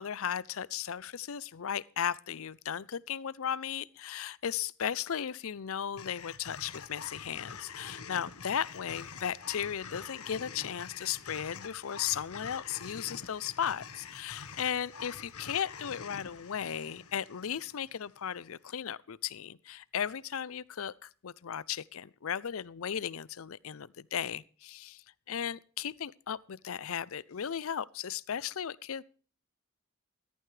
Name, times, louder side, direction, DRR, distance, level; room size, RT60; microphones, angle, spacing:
voice 1, 0.0-29.0, left 8 dB, 70° left, 0.5 m, -36 dB
sound 1, 6.0-18.3, left 6 dB, 85° left, 1.4 m, -46 dB
14.5 x 14.0 x 3.3 m
head